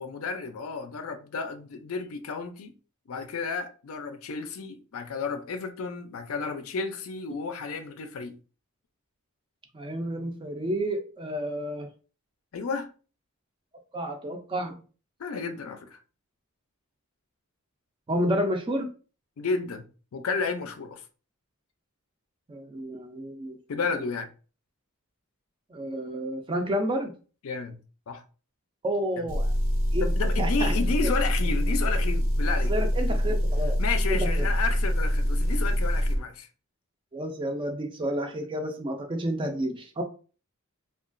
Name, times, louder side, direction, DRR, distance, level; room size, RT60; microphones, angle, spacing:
voice 1, 0.0-2.7 3.1-8.4 12.5-12.9 15.2-16.0 19.4-19.9 20.1-21.0 23.7-24.3 27.4-27.8 28.1-28.2 29.2-29.3 30.0-32.7 33.8-36.5, left 4 dB, 70° left, 0.4 m, -32 dB
voice 2, 9.7-11.9 13.9-14.8 18.1-18.9 22.5-23.6 25.7-27.1 28.8-29.5 29.9-30.1 30.4-30.7 31.0-31.1 32.7-33.8 34.1-34.5 37.1-40.0, equal, 20° right, 0.4 m, -30 dB
Motor vehicle (road) / Engine, 29.3-36.2, equal, 65° right, 0.6 m, -25 dB
2.8 x 2.3 x 2.5 m
head